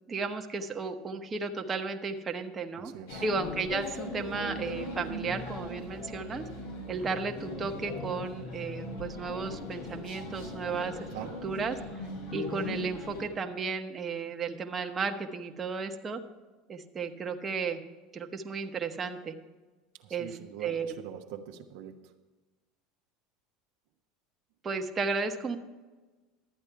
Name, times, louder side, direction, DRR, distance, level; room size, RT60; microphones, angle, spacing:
voice 1, 0.1-2.9 3.2-6.4 6.9-11.0 11.4-11.8 12.3-16.2 16.7-17.8 18.1-19.3 20.1-20.9 24.6-25.6, right 4 dB, 30° right, 4 dB, 1.0 m, -34 dB
voice 2, 2.8-3.2 11.1-11.3 20.0-22.1, right 9 dB, 75° right, 4 dB, 0.9 m, -43 dB
Classroom Ambience (before class), 3.1-13.3, left 2 dB, 85° left, 3.3 m, -39 dB
12.0 x 8.7 x 4.7 m, 1.3 s
supercardioid pair, 100°, 0 cm